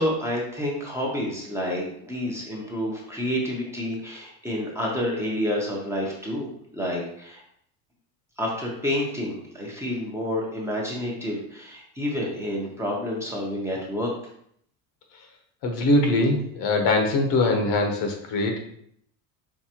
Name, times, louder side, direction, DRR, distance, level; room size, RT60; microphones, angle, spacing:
voice 1, 0.0-7.4 8.4-14.1, left 1 dB, 5° right, -3 dB, 0.8 m, -29 dB
voice 2, 15.6-18.6, left 2 dB, 55° left, 3 dB, 1.0 m, -22 dB
4.7 x 3.2 x 2.9 m, 0.68 s
supercardioid pair, 125°, 42 cm